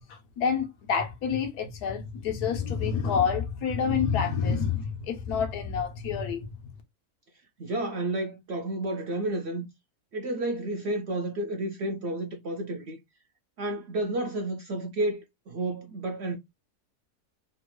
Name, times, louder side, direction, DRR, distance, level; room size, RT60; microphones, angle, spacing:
voice 1, 0.0-6.5, left 6 dB, 90° left, 1.3 m, -28 dB
voice 2, 7.6-9.7 10.1-13.0 13.6-16.4, right 1 dB, 65° right, 0.6 m, -31 dB
3.4 x 2.2 x 3.0 m
omnidirectional pair, 1.6 m